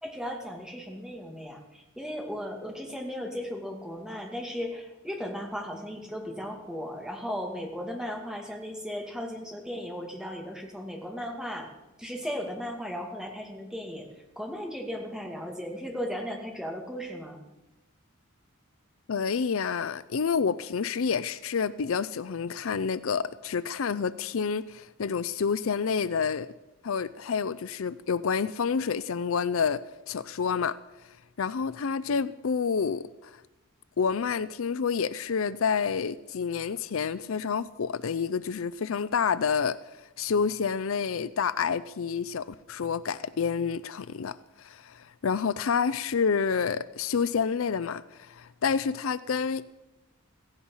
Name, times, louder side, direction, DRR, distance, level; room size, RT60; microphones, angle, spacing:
voice 1, 0.0-11.7 12.0-14.1 14.4-17.4, equal, 5° right, 2.4 m, -36 dB
voice 2, 19.1-26.5 26.8-30.8 31.4-33.3 34.0-39.8 40.2-49.6, left 6 dB, 70° left, 0.5 m, -28 dB
16.5 x 16.0 x 5.6 m
head